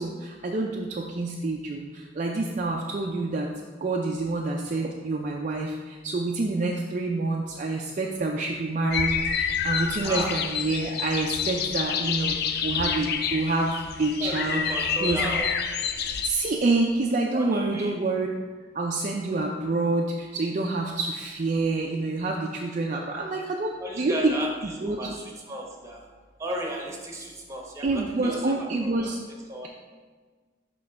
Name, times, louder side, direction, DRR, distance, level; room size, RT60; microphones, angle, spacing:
voice 1, 0.0-1.9 2.2-3.5 3.8-5.7 6.0-12.3 12.6-13.7 14.0-15.3 16.2-18.3 18.8-24.3 24.8-25.1 27.8-29.2, right 2 dB, 40° right, 0 dB, 0.4 m, -27 dB
sound 1, 8.9-16.3, left 7 dB, 55° left, 0.4 m, -28 dB
voice 2, 10.0-10.3 14.2-15.5 17.3-17.9 23.8-26.0 26.4-29.1 29.5-29.7, right 1 dB, 15° right, -1 dB, 0.9 m, -34 dB
6.5 x 3.1 x 5.6 m, 1.5 s
head